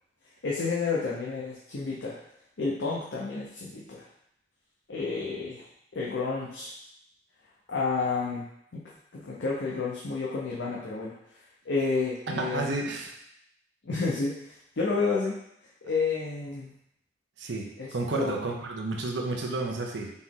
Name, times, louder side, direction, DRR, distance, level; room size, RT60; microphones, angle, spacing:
voice 1, 0.4-2.2 2.6-4.1 4.9-5.7 5.9-6.8 7.7-8.5 8.7-8.8 9.1-11.1 11.6-12.7 13.8-15.4 15.8-16.7 17.8-18.4, left 4 dB, 80° left, -4 dB, 0.7 m, -30 dB
voice 2, 12.3-13.1 17.4-20.1, right 2 dB, 80° right, 1 dB, 0.7 m, -31 dB
4.2 x 2.9 x 3.7 m, 0.76 s
head